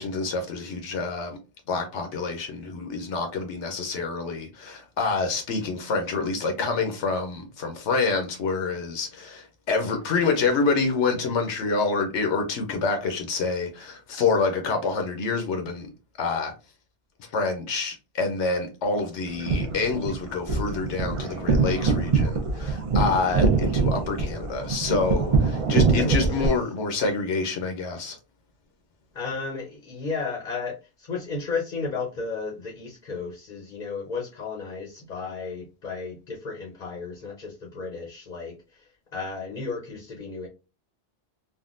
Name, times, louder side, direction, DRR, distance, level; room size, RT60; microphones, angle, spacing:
voice 1, 0.0-1.4 1.7-15.9 16.2-16.5 17.3-28.2, left 4 dB, 80° left, 1.0 m, -27 dB
sound 1, 19.3-26.5, right 4 dB, 40° right, 0.5 m, -24 dB
voice 2, 26.0-26.5 29.1-38.6 39.1-40.5, left 4 dB, 45° left, 0.7 m, -33 dB
3.6 x 2.2 x 2.4 m
omnidirectional pair, 1.2 m